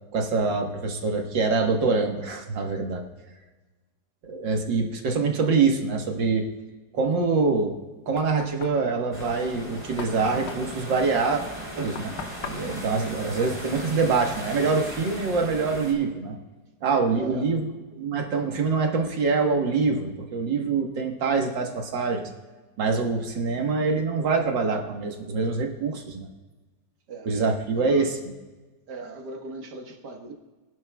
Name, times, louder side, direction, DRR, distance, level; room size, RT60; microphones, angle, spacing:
voice 1, 0.1-3.0 4.2-6.4 6.9-7.7 8.1-11.4 11.8-12.1 12.5-16.3 16.8-17.7 18.0-22.3 22.8-26.3 27.3-28.1, right 4 dB, 80° right, 2 dB, 2.1 m, -25 dB
Knock, 7.6-14.1, left 6 dB, 55° left, 0.7 m, -42 dB
sound 1, 9.1-15.9, equal, 15° right, 4.0 m, -38 dB
voice 2, 17.1-17.5 27.1-27.4 27.7-28.2 28.9-30.3, right 2 dB, 65° right, 3 dB, 1.9 m, -39 dB
23.5 x 10.5 x 2.3 m, 1.3 s
omnidirectional pair, 2.0 m